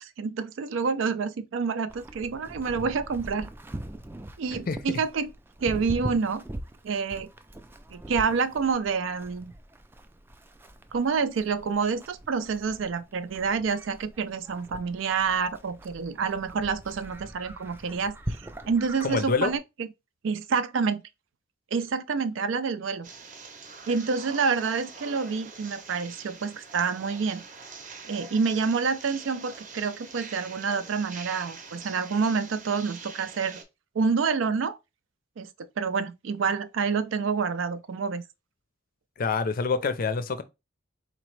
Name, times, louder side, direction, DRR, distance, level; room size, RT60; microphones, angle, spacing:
voice 1, 0.0-3.5 4.4-5.3 5.6-6.4 6.8-7.3 7.9-9.5 10.9-18.2 18.7-19.9 20.2-21.0 21.7-23.1 23.9-27.4 28.1-33.6 33.9-34.8 35.4-38.2, right 5 dB, 80° right, 0.4 m, -28 dB
Livestock farm animals working animals, 1.9-19.6, right 1 dB, 10° right, 0.3 m, -42 dB
voice 2, 19.0-19.5 39.2-40.4, left 4 dB, 50° left, 0.5 m, -26 dB
sound 1, 23.0-33.6, right 4 dB, 40° right, 0.7 m, -44 dB
4.0 x 2.9 x 3.1 m
head